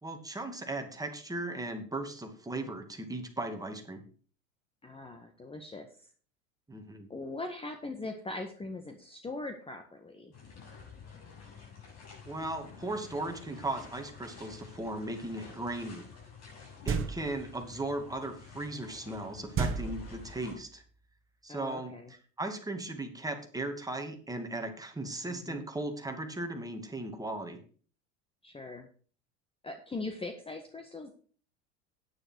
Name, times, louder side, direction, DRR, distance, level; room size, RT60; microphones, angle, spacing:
voice 1, 0.0-4.0 6.7-7.1 12.3-16.0 16.8-20.8 21.4-27.6, right 2 dB, 10° right, 4 dB, 2.5 m, -37 dB
voice 2, 4.8-6.1 7.1-10.3 21.5-22.1 25.3-25.7 28.4-28.9 29.6-31.1, left 2 dB, 15° left, 6 dB, 1.6 m, -41 dB
sound 1, 10.3-20.5, left 5 dB, 45° left, 7.4 m, -50 dB
sound 2, 16.9-17.5 19.6-20.6, right 6 dB, 30° right, 1.7 m, -33 dB
9.8 x 9.6 x 4.7 m, 0.41 s
hypercardioid pair, 85°, 39 cm